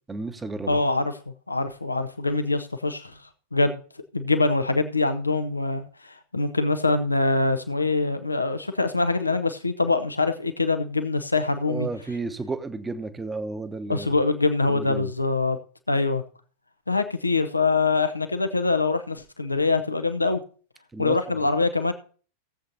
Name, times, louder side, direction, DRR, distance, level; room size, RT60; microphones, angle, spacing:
voice 1, 0.1-0.8 11.7-14.2 14.7-15.1 20.9-21.5, right 3 dB, 10° right, 10 dB, 1.0 m, -33 dB
voice 2, 0.7-1.1 1.5-3.1 3.5-3.8 4.1-11.9 13.9-15.6 15.9-16.2 16.9-20.4 21.0-21.9, left 3 dB, 80° left, 9 dB, 0.9 m, -24 dB
19.5 x 7.8 x 2.8 m, 0.41 s
figure-of-eight pair, 90°, 0 cm